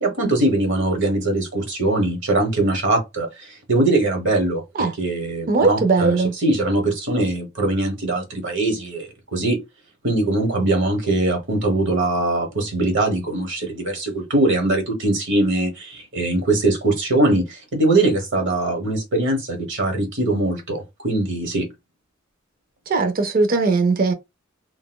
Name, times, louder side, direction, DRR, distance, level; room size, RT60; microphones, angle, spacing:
voice 1, 0.0-9.6 10.0-21.7, right 2 dB, 60° right, 1.2 m, -21 dB
voice 2, 5.5-6.3 22.9-24.1, right 4 dB, 45° right, 0.5 m, -19 dB
3.9 x 2.2 x 2.3 m
head